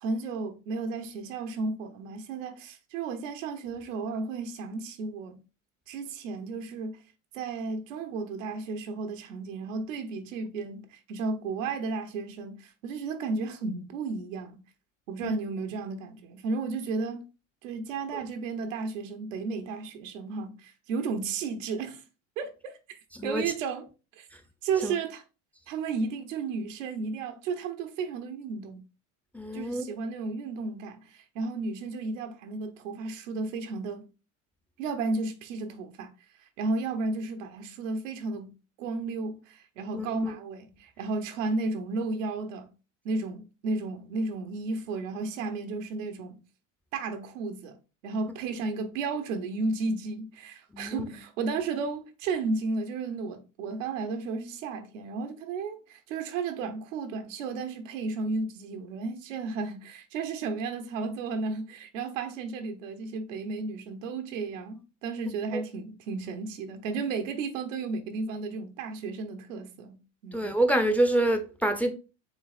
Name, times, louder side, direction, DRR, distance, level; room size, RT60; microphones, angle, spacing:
voice 1, 0.0-5.4 5.9-7.0 7.3-14.6 15.1-17.2 17.6-22.0 22.4-23.9 24.2-24.3 24.6-25.2 25.7-28.8 29.5-34.0 34.8-36.1 36.6-42.7 43.0-46.4 46.9-47.8 48.0-70.5, right 4 dB, 90° right, 0.9 m, -33 dB
voice 2, 23.1-23.5 24.8-24.9 29.3-29.8 39.9-40.3 50.7-51.1 65.5-65.6 70.3-71.9, right 1 dB, 5° left, 0.6 m, -27 dB
5.3 x 3.5 x 2.4 m
supercardioid pair, 100°, 37 cm